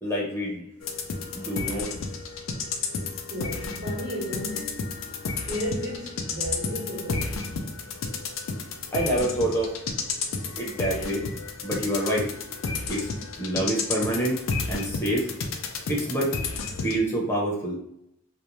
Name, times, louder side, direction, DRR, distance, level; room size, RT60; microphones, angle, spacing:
voice 1, 0.0-0.6 1.3-1.9 8.9-9.7 10.6-11.2 11.6-12.3 12.9-13.1 13.4-14.3 14.7-15.3 15.9-16.3 16.8-17.8, right 1 dB, 15° left, 0.7 m, -26 dB
sound 1, 0.8-17.0, left 4 dB, 80° left, 0.4 m, -32 dB
voice 2, 2.9-4.9 5.4-7.4, equal, 65° right, 1.0 m, -34 dB
2.5 x 2.1 x 3.0 m
head